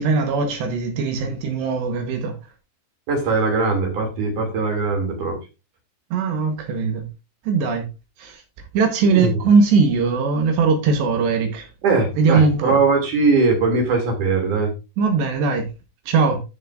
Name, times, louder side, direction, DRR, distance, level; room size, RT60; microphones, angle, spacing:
voice 1, 0.0-2.4 6.1-7.1 7.5-7.9 8.2-8.4 8.7-11.7 12.2-12.8 15.0-15.7 16.1-16.4, right 4 dB, 70° right, 2.9 m, -20 dB
voice 2, 3.1-5.4 9.1-9.3 11.8-14.7, right 3 dB, 45° right, 3.4 m, -20 dB
13.0 x 6.5 x 2.5 m
omnidirectional pair, 5.9 m